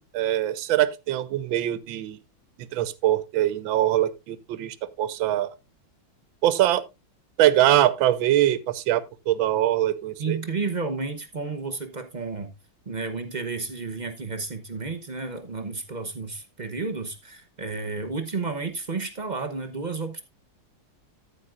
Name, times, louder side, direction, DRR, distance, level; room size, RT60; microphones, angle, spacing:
voice 1, 0.1-2.2 2.7-5.5 6.4-6.8 7.4-10.4, right 13 dB, 75° right, 1.5 m, -23 dB
voice 2, 10.2-12.5 12.9-20.2, right 4 dB, 45° right, 0.5 m, -32 dB
13.5 x 8.3 x 2.5 m
omnidirectional pair, 2.2 m